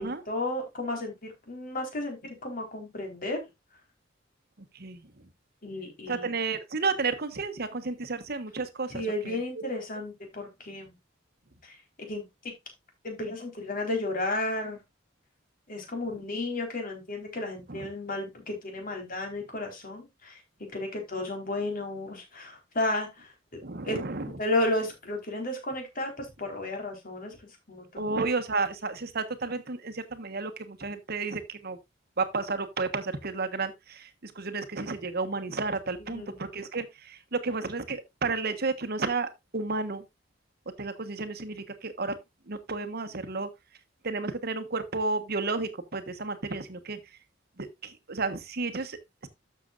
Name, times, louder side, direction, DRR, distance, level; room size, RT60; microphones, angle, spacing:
voice 1, 0.0-3.4 5.6-6.2 8.9-11.0 11.6-12.2 13.0-14.8 15.7-20.4 20.7-23.3 23.8-24.0 24.3-27.4 27.7-28.1 36.1-36.4, left 1 dB, 50° left, 4.3 m, -33 dB
voice 2, 4.7-5.1 6.1-9.6 16.1-16.2 17.7-17.9 23.6-24.3 27.9-31.8 32.2-40.0 40.8-42.2 42.5-43.5 44.0-47.0 47.6-49.3, right 3 dB, 55° right, 1.3 m, -32 dB
12.5 x 6.9 x 2.5 m
head